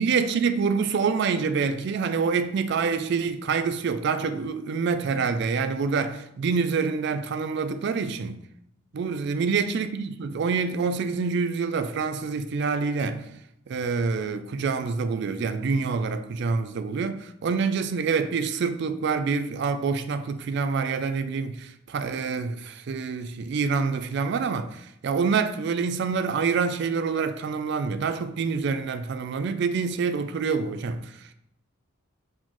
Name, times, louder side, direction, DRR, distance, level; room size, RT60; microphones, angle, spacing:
voice 1, 0.0-8.4 8.9-13.3 13.7-31.3, right 5 dB, 55° right, 0.3 m, -26 dB
4.2 x 3.0 x 3.8 m
head